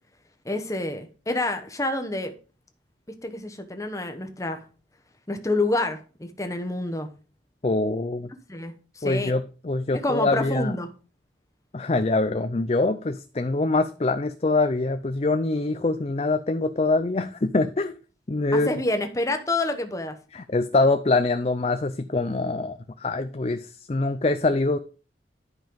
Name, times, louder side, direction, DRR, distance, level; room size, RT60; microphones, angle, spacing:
voice 1, 0.4-2.3 3.2-4.6 5.3-7.1 8.5-9.3 9.9-10.9 18.5-20.2, left 2 dB, 20° left, 6 dB, 1.0 m, -28 dB
voice 2, 7.6-8.3 9.0-10.7 11.7-17.9 18.3-18.7 20.3-24.8, left 2 dB, 35° left, 9 dB, 0.5 m, -24 dB
10.5 x 5.5 x 5.3 m, 0.35 s
head